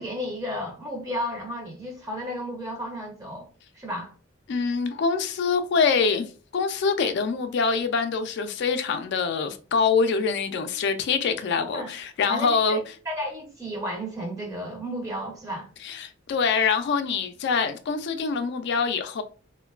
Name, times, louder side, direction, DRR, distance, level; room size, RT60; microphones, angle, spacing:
voice 1, 0.0-3.5 3.7-4.1 11.7-11.9 12.3-12.8 13.1-15.7, equal, 15° right, 0.6 m, -33 dB
voice 2, 4.5-12.8 15.8-19.2, left 5 dB, 60° left, 0.3 m, -25 dB
3.0 x 2.1 x 2.3 m
head